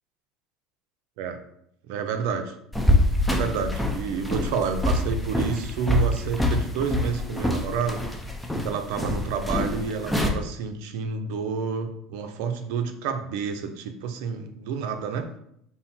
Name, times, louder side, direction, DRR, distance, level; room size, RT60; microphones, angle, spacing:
voice 1, 1.9-2.5 3.3-8.0 8.6-15.3, right 6 dB, 75° right, 6 dB, 0.6 m, -29 dB
sound 1, 2.7-10.3, left 1 dB, 5° left, 0.6 m, -25 dB
5.4 x 2.1 x 4.3 m, 0.73 s
supercardioid pair, 120°, 0 cm